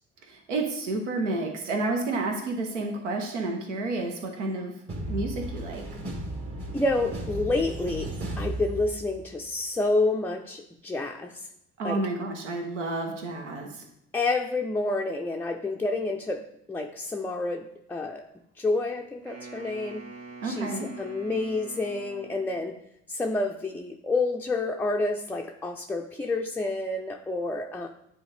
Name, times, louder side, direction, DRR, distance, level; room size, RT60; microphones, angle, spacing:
voice 1, 0.3-4.7 5.1-5.8 11.8-13.8 20.4-20.9, right 2 dB, 85° right, 3 dB, 0.9 m, -30 dB
sound 1, 4.9-9.4, right 1 dB, 40° right, 1.6 m, -35 dB
voice 2, 6.7-11.5 11.8-12.0 14.1-18.3 18.6-20.1 20.4-22.8 23.1-27.9, left 2 dB, 5° left, 2 dB, 0.4 m, -29 dB
Wind instrument woodwind instrument, 19.2-22.7, right 4 dB, 65° right, 1.2 m, -44 dB
9.3 x 3.7 x 3.2 m, 0.78 s
hypercardioid pair, 55°, 35 cm